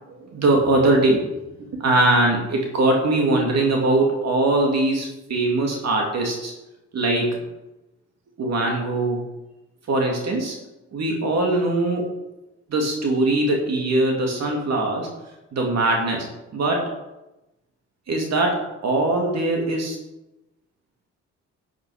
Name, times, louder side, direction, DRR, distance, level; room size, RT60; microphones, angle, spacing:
voice 1, 0.1-1.2 1.8-6.5 6.9-7.4 8.4-9.2 9.9-10.5 10.9-12.1 12.7-15.1 15.5-16.2 16.5-16.9 18.1-20.0, right 2 dB, 60° right, 1 dB, 2.6 m, -21 dB
11.5 x 9.4 x 5.0 m, 0.98 s
cardioid pair, 90°, 30 cm